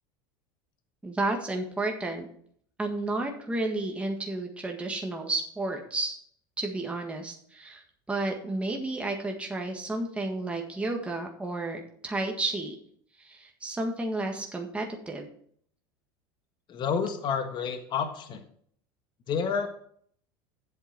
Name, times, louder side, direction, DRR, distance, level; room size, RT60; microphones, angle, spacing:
voice 1, 1.0-2.3 2.8-6.1 6.6-12.7 13.2-15.3, right 2 dB, 10° right, 2 dB, 1.6 m, -32 dB
voice 2, 16.7-18.4 19.3-19.7, left 6 dB, 40° left, 7 dB, 1.5 m, -29 dB
8.1 x 7.7 x 5.9 m, 0.62 s
supercardioid pair, 110°, 12 cm